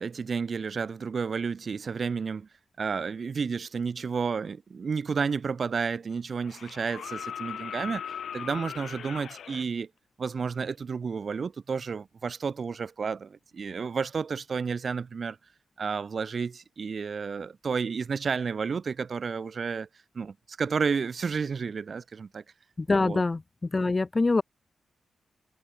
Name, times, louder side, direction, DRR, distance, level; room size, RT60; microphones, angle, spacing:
voice 1, 0.0-2.5 2.8-8.0 8.3-9.9 10.2-15.4 15.8-19.9 20.1-22.4 23.0-23.2, right 5 dB, 40° right, 1.0 m, -31 dB
sound 1, 5.3-5.4 6.4-9.7 11.4-11.5, left 8 dB, 70° left, 1.7 m, -38 dB
voice 2, 22.8-23.4 23.7-24.4, left 3 dB, 20° left, 0.4 m, -24 dB
wide cardioid pair, 150°, 0 cm